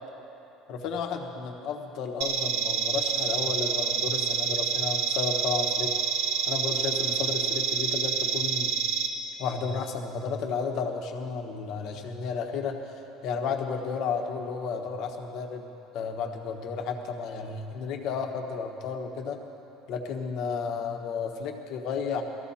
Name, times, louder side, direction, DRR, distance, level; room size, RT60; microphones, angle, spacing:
voice 1, 0.7-5.9 6.5-8.8 9.4-12.8 13.2-15.7 15.9-19.4 19.9-22.2, left 5 dB, 50° left, 3 dB, 1.2 m, -32 dB
sound 1, 2.2-9.1, right 6 dB, 70° right, 1.3 m, -27 dB
18.5 x 14.0 x 4.3 m, 2.9 s
cardioid pair, 170°, 0 cm